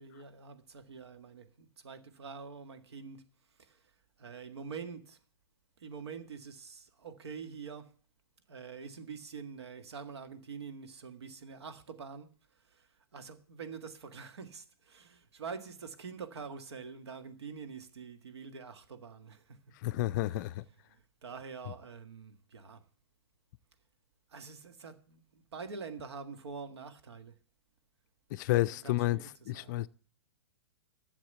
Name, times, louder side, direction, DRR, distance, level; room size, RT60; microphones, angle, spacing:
voice 1, 0.0-3.2 3.6-3.9 4.2-5.2 5.8-7.9 8.5-19.6 20.3-20.5 20.9-22.8 24.3-27.3 28.5-29.8, right 5 dB, 90° right, 1.8 m, -46 dB
voice 2, 19.8-20.6 28.3-29.9, left 16 dB, 45° left, 0.5 m, -31 dB
11.5 x 7.3 x 8.1 m
hypercardioid pair, 140°, 14 cm